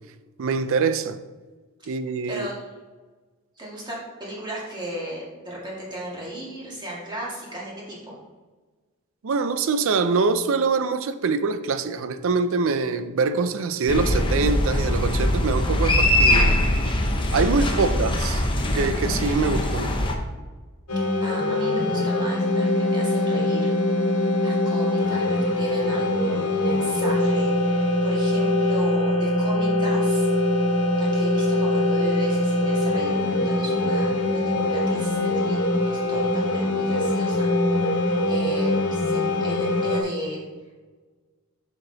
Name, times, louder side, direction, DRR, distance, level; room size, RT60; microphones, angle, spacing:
voice 1, 0.4-1.2 1.9-2.5 9.2-16.6 17.3-18.5 18.7-20.0, right 4 dB, 65° right, 0.5 m, -24 dB
voice 2, 2.3-2.6 3.6-8.2 17.7-17.9 21.2-30.3 30.7-34.1 34.3-37.7 38.3-40.4, right 1 dB, 20° right, 1.9 m, -36 dB
sound 1, 13.9-20.1, left 1 dB, 25° left, 0.8 m, -22 dB
sound 2, 20.9-40.0, left 1 dB, 65° left, 1.4 m, -23 dB
6.7 x 5.8 x 3.9 m
head